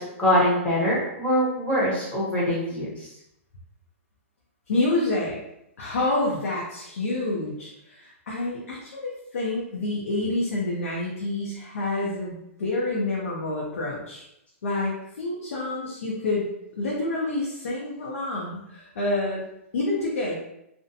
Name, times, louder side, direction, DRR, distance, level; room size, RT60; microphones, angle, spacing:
voice 1, 0.0-2.9, equal, 15° left, -6 dB, 0.8 m, -23 dB
voice 2, 4.7-5.4 5.8-14.2 14.6-19.4 19.7-20.4, left 2 dB, 85° left, -5 dB, 0.7 m, -28 dB
2.5 x 2.2 x 2.6 m, 0.83 s
hypercardioid pair, 150°, 8 cm